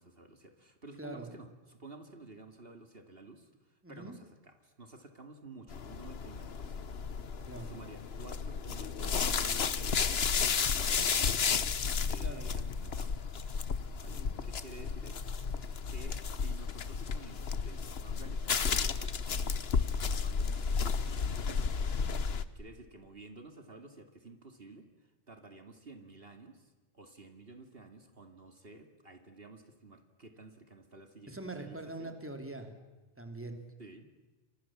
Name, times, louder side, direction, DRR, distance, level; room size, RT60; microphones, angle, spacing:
voice 1, 0.0-6.8 7.3-13.2 14.0-15.3 15.9-21.8 22.5-32.2 33.8-34.1, right 3 dB, 55° right, 6 dB, 2.6 m, -52 dB
voice 2, 1.0-1.3 3.8-4.1 7.5-7.7 12.2-12.6 14.0-14.4 31.3-32.7 33.2-33.6, right 2 dB, 10° right, 6 dB, 2.9 m, -43 dB
sound 1, 5.7-22.4, left 6 dB, 60° left, 1.3 m, -33 dB
30.0 x 26.0 x 7.3 m, 1.2 s
omnidirectional pair, 1.2 m